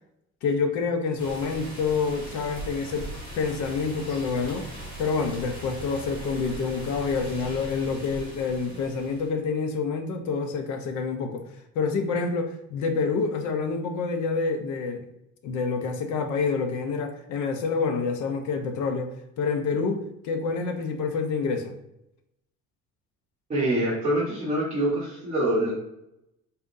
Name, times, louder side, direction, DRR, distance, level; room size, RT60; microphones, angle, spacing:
voice 1, 0.4-3.1 3.4-4.7 5.0-11.4 11.7-15.0 15.4-21.7, left 4 dB, 70° left, 6 dB, 0.7 m, -27 dB
sound 1, 1.2-9.3, right 1 dB, 15° left, 1.0 m, -40 dB
voice 2, 23.5-25.7, right 1 dB, 25° right, -10 dB, 1.1 m, -25 dB
4.2 x 3.8 x 2.5 m, 0.85 s
cardioid pair, 175°, 30 cm